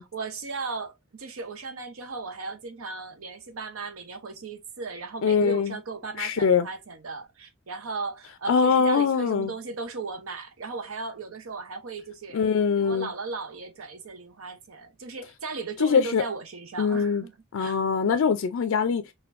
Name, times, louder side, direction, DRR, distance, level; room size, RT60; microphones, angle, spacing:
voice 1, 0.0-12.4 12.8-17.3 17.6-17.8, right 4 dB, 75° right, 0.8 m, -36 dB
voice 2, 5.2-5.7 6.2-6.7 8.5-9.5 12.3-13.1 15.8-16.2 16.8-17.3 17.5-19.0, left 6 dB, 65° left, 0.4 m, -22 dB
4.3 x 2.2 x 2.5 m
head